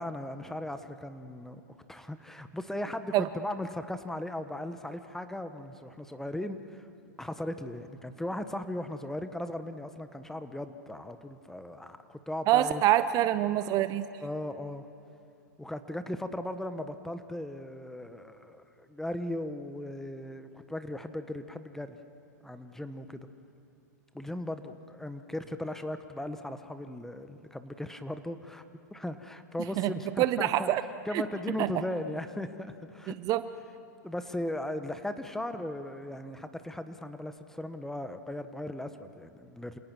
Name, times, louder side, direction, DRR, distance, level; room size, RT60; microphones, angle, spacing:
voice 1, 0.0-1.6 1.9-6.9 7.2-12.8 14.2-14.9 15.6-22.0 22.4-23.3 24.1-28.6 28.9-30.7 31.0-33.2 34.0-39.8, left 1 dB, 5° left, 9 dB, 1.2 m, -37 dB
voice 2, 12.5-14.1 29.8-29.9 30.2-30.8 31.1-31.2 31.6-31.7 33.3-33.4, right 13 dB, 40° right, 13 dB, 0.8 m, -25 dB
28.0 x 18.5 x 6.2 m, 2.7 s
hypercardioid pair, 110°, 10 cm